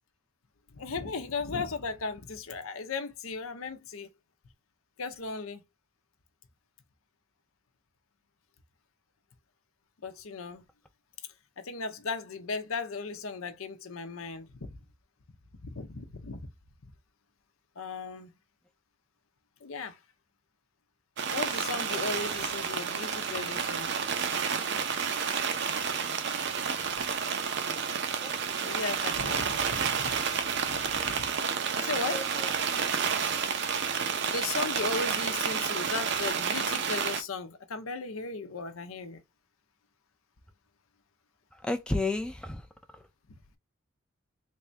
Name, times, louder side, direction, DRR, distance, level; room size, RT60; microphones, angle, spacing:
voice 1, 0.7-4.1 5.0-5.6 10.0-10.6 11.6-14.7 15.6-16.5 17.8-18.3 19.6-20.0 21.3-23.9 28.6-30.2 30.6-31.3 31.7-32.2 34.2-39.2, left 4 dB, 90° left, 0.7 m, -36 dB
sound 1, 21.2-37.2, right 6 dB, 55° right, 0.6 m, -30 dB
voice 2, 28.2-28.8 32.1-32.5 35.1-35.2 41.5-42.7 42.9-43.0, left 2 dB, 5° left, 0.4 m, -33 dB
3.5 x 2.7 x 3.2 m
head